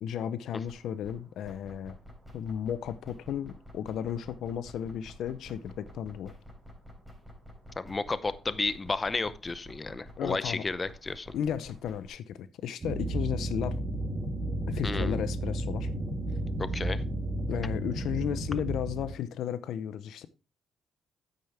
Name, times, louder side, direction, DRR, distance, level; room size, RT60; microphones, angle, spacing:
voice 1, 0.0-2.0 2.3-6.3 10.2-10.6 11.3-13.8 14.7-15.9 17.5-20.3, left 9 dB, 75° left, 0.7 m, -34 dB
sound 1, 0.7-12.1, equal, ahead, 4.3 m, -50 dB
voice 2, 7.8-11.3 14.8-15.2 16.6-17.0, left 3 dB, 25° left, 0.6 m, -32 dB
sound 2, 12.8-19.1, right 1 dB, 35° right, 3.0 m, -32 dB
9.3 x 8.8 x 3.4 m
cardioid pair, 90°, 0 cm